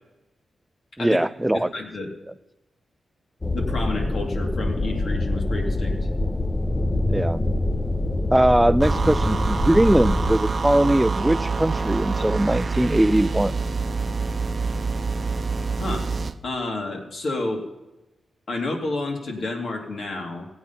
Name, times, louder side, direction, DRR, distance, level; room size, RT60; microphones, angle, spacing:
voice 1, 1.0-1.7 7.1-7.4 8.3-13.5, right 1 dB, 10° right, 15 dB, 0.3 m, -20 dB
voice 2, 1.5-2.1 3.5-6.0 15.8-16.1 16.4-17.6 18.5-20.5, left 2 dB, 70° left, 1 dB, 2.6 m, -30 dB
sound 1, 3.4-10.4, left 2 dB, 25° left, 0.8 m, -25 dB
sound 2, 8.8-16.4, right 4 dB, 50° right, 0.6 m, -26 dB
16.5 x 8.2 x 5.8 m, 1.0 s
cardioid pair, 65°, 0 cm